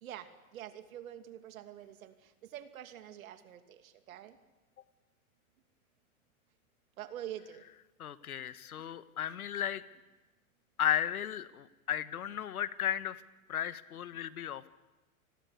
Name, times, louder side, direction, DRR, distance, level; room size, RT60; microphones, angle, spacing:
voice 1, 0.0-4.4 7.0-7.6 8.8-8.9 14.3-14.5, right 11 dB, 70° right, 8 dB, 2.8 m, -46 dB
voice 2, 8.0-9.8 10.8-13.2 13.5-14.7, left 10 dB, 85° left, 14 dB, 1.4 m, -34 dB
30.0 x 20.5 x 8.4 m, 1.1 s
hypercardioid pair, 120°, 43 cm